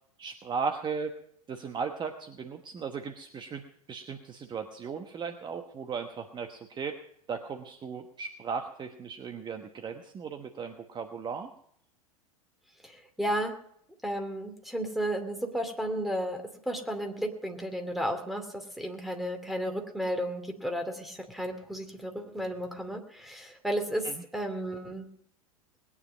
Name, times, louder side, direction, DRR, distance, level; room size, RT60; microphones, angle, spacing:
voice 1, 0.2-1.1 1.5-3.6 3.9-7.0 7.3-11.5 24.0-24.1, right 5 dB, 25° right, 6 dB, 1.2 m, -36 dB
voice 2, 13.2-13.5 14.0-25.1, equal, ahead, 5 dB, 2.5 m, -33 dB
20.5 x 9.9 x 5.1 m, 0.67 s
figure-of-eight pair, 90°, 18 cm